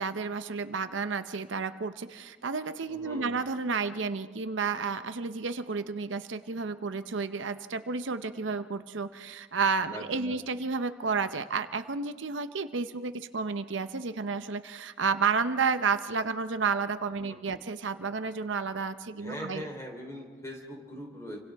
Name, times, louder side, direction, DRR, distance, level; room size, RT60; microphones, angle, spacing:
voice 1, 0.0-19.7 21.3-21.4, right 5 dB, 75° right, 10 dB, 0.7 m, -31 dB
voice 2, 2.9-3.5 9.9-10.4 17.2-17.6 19.1-21.4, equal, 15° left, 1 dB, 3.6 m, -41 dB
29.5 x 25.0 x 3.5 m, 1.5 s
head